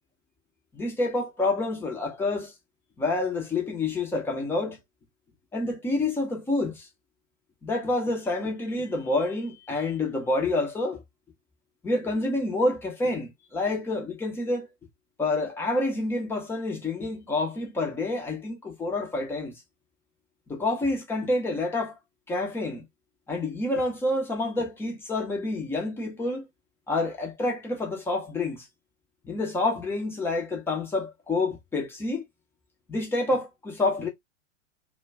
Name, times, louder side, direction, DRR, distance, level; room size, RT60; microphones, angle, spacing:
voice 1, 0.7-2.5 3.0-4.8 5.5-6.9 7.6-11.0 11.8-14.7 15.2-19.5 20.5-22.0 22.3-22.8 23.3-26.5 26.9-28.7 29.2-32.2 32.9-34.1, left 2 dB, 5° left, 0.4 m, -28 dB
2.2 x 2.1 x 3.3 m
figure-of-eight pair, 95°, 38 cm